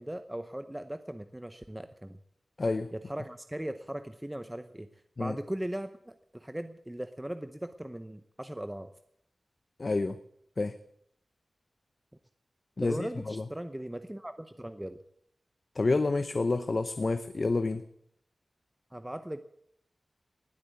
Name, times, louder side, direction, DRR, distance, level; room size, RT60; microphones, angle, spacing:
voice 1, 0.0-2.2 2.9-4.9 5.2-8.9 12.8-15.0 18.9-19.4, right 1 dB, 10° right, 9 dB, 0.8 m, -38 dB
voice 2, 2.6-2.9 5.2-5.4 9.8-10.2 10.6-10.8 12.8-13.4 15.7-17.8, left 3 dB, 45° left, 10 dB, 0.8 m, -29 dB
19.0 x 8.5 x 8.3 m, 0.72 s
wide cardioid pair, 100°, 0 cm